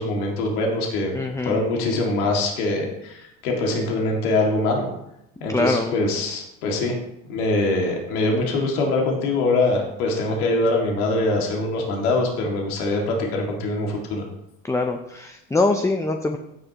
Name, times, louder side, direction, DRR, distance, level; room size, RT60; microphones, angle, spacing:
voice 1, 0.0-1.1 1.4-4.9 5.4-7.0 7.3-14.2, left 2 dB, 90° left, 0 dB, 2.3 m, -23 dB
voice 2, 1.1-1.6 5.5-6.0 14.6-16.4, left 2 dB, 5° left, 5 dB, 0.6 m, -23 dB
15.5 x 6.5 x 3.0 m, 0.82 s
supercardioid pair, 95°, 43 cm